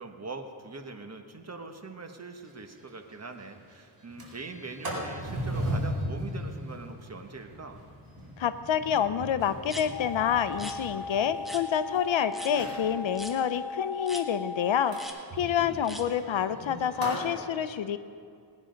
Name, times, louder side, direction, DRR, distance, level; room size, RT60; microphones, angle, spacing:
voice 1, 0.0-7.8 15.6-15.8, right 3 dB, 35° right, 5 dB, 1.2 m, -42 dB
Sliding door, 2.4-2.5 2.9-3.0 3.3-3.6 4.0-12.0 12.4-12.9 14.9-17.3, right 1 dB, 50° right, 4.4 m, -37 dB
voice 2, 8.4-15.0 15.4-18.0, left 8 dB, 70° left, 12 dB, 0.8 m, -28 dB
sound 1, 9.7-9.9 10.5-10.8 11.5-11.6 12.3-12.5 13.1-13.4 14.1-14.2 14.9-15.2 15.8-16.0, equal, ahead, 1.2 m, -41 dB
sound 2, 9.9-15.1, left 4 dB, 40° left, 2.5 m, -38 dB
19.5 x 9.8 x 5.2 m, 2.4 s
wide cardioid pair, 105°, 47 cm